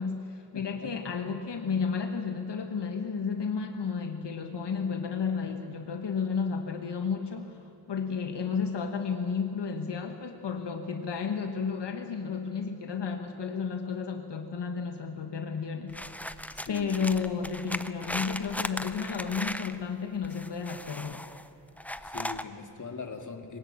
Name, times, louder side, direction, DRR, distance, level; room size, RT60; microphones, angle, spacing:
voice 1, 0.0-16.3 16.7-21.3, left 5 dB, 75° left, 5 dB, 1.3 m, -32 dB
voice 2, 0.5-1.4 16.5-16.9 22.0-23.6, left 4 dB, 45° left, 5 dB, 2.0 m, -42 dB
sound 1, 15.9-19.8 20.2-21.5 21.8-22.4, left 1 dB, 5° left, 0.6 m, -37 dB
22.5 x 20.0 x 8.7 m, 2.7 s
wide cardioid pair, 135°, 42 cm